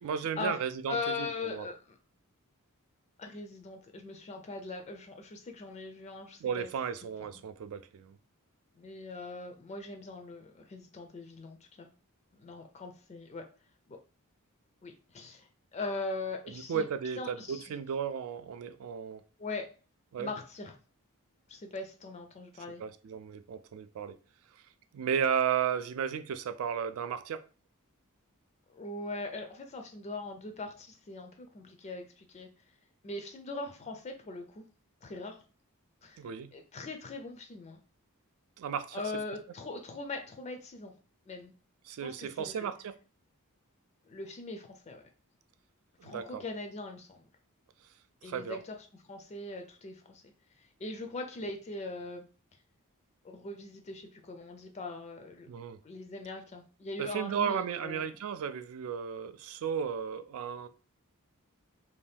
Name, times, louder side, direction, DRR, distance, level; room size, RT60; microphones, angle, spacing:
voice 1, 0.0-1.7 6.4-8.2 16.7-19.2 20.1-20.3 22.8-24.2 24.9-27.4 36.2-36.5 38.6-39.0 41.9-43.0 46.0-46.4 48.3-48.6 55.5-55.8 57.0-60.7, right 7 dB, 70° right, 0.3 m, -34 dB
voice 2, 0.9-2.0 3.2-6.7 8.8-11.9 12.4-13.4 13.9-14.0 14.8-16.9 17.2-17.7 19.4-19.7 20.2-20.7 21.5-22.8 28.7-32.5 33.0-34.6 35.0-35.4 36.0-36.2 36.5-37.8 38.9-40.9 41.3-41.5 42.0-42.7 44.1-45.0 46.0-47.3 48.2-48.8 49.1-50.3 50.6-52.2 53.2-55.5 55.8-58.1, left 3 dB, 30° left, 0.3 m, -41 dB
2.7 x 2.2 x 3.3 m
head